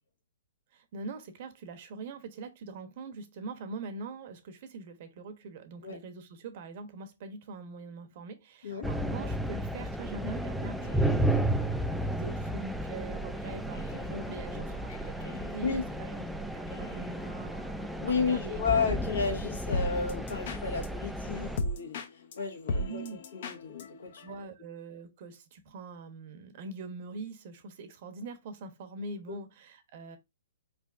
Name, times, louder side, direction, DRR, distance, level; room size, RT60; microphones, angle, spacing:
voice 1, 0.7-18.6 22.7-23.2 24.2-30.2, right 3 dB, 45° right, 0.8 m, -43 dB
sound 1, 8.8-21.6, right 1 dB, ahead, 0.3 m, -33 dB
sound 2, 10.7-24.4, left 2 dB, 55° left, 0.8 m, -41 dB
voice 2, 18.0-22.0 22.4-23.0 23.3-24.2 29.3-29.4, left 5 dB, 80° left, 1.5 m, -32 dB
4.3 x 3.3 x 2.5 m
hypercardioid pair, 145°, 0 cm